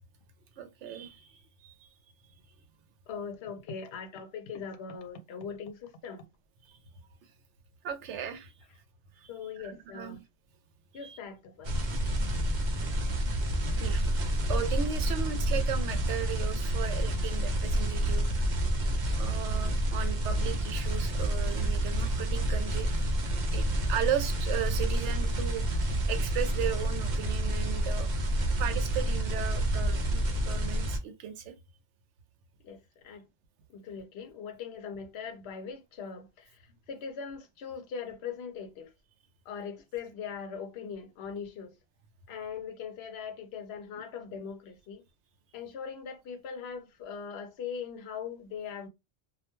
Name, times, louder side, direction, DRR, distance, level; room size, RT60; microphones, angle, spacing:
voice 1, 0.6-1.9 7.8-8.5 9.2-9.3 9.6-10.2 11.0-11.2 13.8-18.5 19.2-23.1 23.5-28.1 28.6-31.5, right 9 dB, 80° right, 0.9 m, -36 dB
voice 2, 3.1-6.2 9.3-10.2 10.9-11.7 32.6-32.8 33.0-33.2 33.7-36.5 36.9-38.9 39.5-41.7 42.3-45.0 45.5-48.9, left 6 dB, 65° left, 0.8 m, -40 dB
sound 1, 11.6-31.0, right 1 dB, 50° right, 0.6 m, -29 dB
2.4 x 2.2 x 2.9 m
omnidirectional pair, 1.2 m